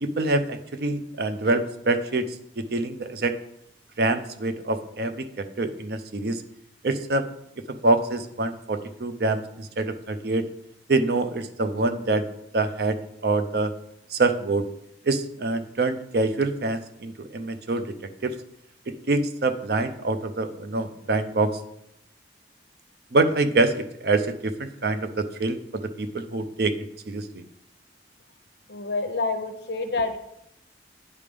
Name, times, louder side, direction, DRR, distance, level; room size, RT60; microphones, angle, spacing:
voice 1, 0.0-2.3 2.6-3.4 4.0-6.4 6.8-7.3 7.7-10.5 10.9-12.3 12.5-13.0 13.2-13.7 14.1-14.6 15.0-17.9 18.2-18.3 19.1-21.6 23.1-26.7 27.1-27.4, right 2 dB, 60° right, 9 dB, 0.6 m, -25 dB
voice 2, 28.7-30.2, left 3 dB, 65° left, 7 dB, 0.7 m, -27 dB
9.6 x 3.4 x 5.2 m, 0.78 s
head